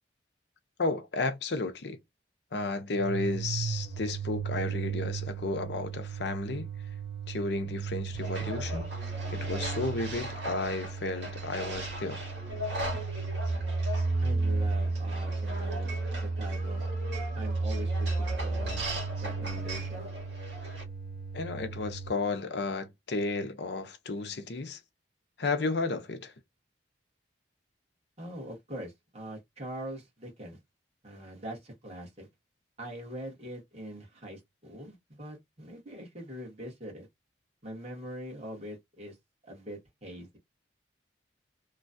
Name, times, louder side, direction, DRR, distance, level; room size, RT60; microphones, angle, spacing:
voice 1, 0.8-2.0 2.5-6.7 7.3-8.9 9.3-12.2 21.3-24.8 25.4-26.3, left 3 dB, 65° left, 0.6 m, -33 dB
sound 1, 2.9-22.1, right 4 dB, 5° right, 1.2 m, -34 dB
sound 2, 8.2-20.8, equal, 70° right, 1.6 m, -40 dB
voice 2, 14.2-16.9 17.3-18.9 19.2-20.1 28.2-30.6 31.0-32.3 32.8-37.1 37.6-39.2 39.4-40.4, equal, 35° right, 1.5 m, -43 dB
3.1 x 2.3 x 2.5 m
head